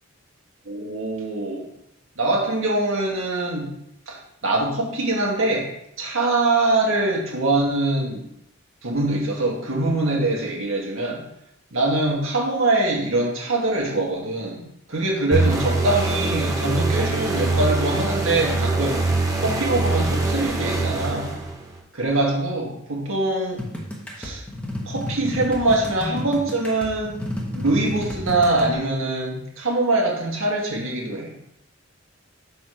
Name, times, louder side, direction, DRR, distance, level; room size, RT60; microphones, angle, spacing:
voice 1, 0.7-1.7 2.2-3.7 4.1-5.7 6.0-8.3 8.8-11.2 11.7-19.0 19.4-21.3 21.9-23.6 24.2-24.4 24.9-27.2 27.5-31.3, right 2 dB, 75° right, -2 dB, 1.9 m, -23 dB
sound 1, 15.3-21.8, right 2 dB, 15° right, 1.0 m, -23 dB
sound 2, 23.6-28.7, equal, 5° left, 1.1 m, -31 dB
6.2 x 4.2 x 5.0 m, 0.78 s
head